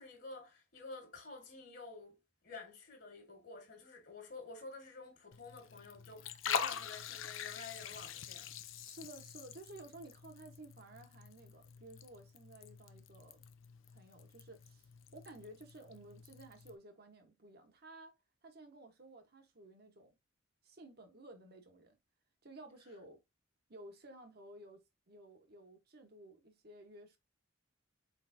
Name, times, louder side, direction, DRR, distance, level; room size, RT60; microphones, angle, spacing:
voice 1, 0.0-8.5, left 3 dB, 55° left, 1.7 m, -50 dB
Liquid, 5.3-16.7, left 7 dB, 85° left, 0.6 m, -45 dB
voice 2, 8.8-13.4 13.9-18.1 18.4-20.2 20.6-22.0 22.4-23.2 23.7-27.2, right 2 dB, 55° right, 1.2 m, -55 dB
4.5 x 3.9 x 2.7 m
head